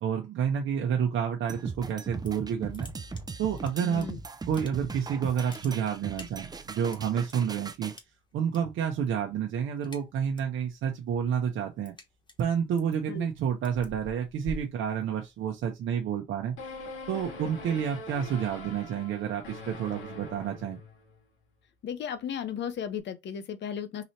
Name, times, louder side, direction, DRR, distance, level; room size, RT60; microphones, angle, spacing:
voice 1, 0.0-2.9 3.4-4.1 4.5-7.9 8.3-11.9 12.4-16.6 17.1-20.8, right 8 dB, 75° right, 0.8 m, -29 dB
sound 1, 1.5-8.0, right 4 dB, 20° right, 0.5 m, -39 dB
sound 2, 2.1-2.5 2.7-4.0 4.4-5.0 5.3-7.3 7.9-8.6 8.9-9.2 9.5-10.6 11.0-15.5, left 2 dB, 25° left, 1.1 m, -47 dB
voice 2, 3.8-4.2 13.1-13.3 21.8-24.0, left 8 dB, 65° left, 0.8 m, -35 dB
sound 3, 16.6-21.2, left 2 dB, 85° left, 2.0 m, -43 dB
3.9 x 2.8 x 3.2 m
cardioid pair, 90°, 20 cm